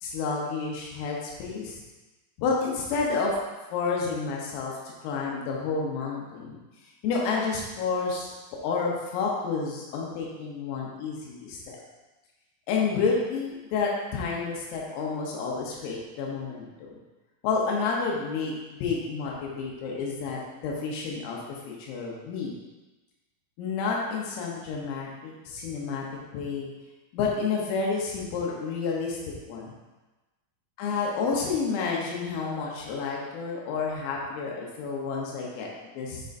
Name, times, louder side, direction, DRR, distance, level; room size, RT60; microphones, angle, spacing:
voice 1, 0.0-1.8 2.4-3.3 3.7-4.7 5.0-6.6 7.0-8.3 8.6-11.8 12.7-16.9 17.4-21.4 21.7-22.5 23.6-26.1 26.3-26.7 27.1-29.2 29.5-29.7 30.8-36.2, left 4 dB, 85° left, -2 dB, 3.7 m, -30 dB
9.0 x 5.2 x 2.6 m, 1.2 s
omnidirectional pair, 5.9 m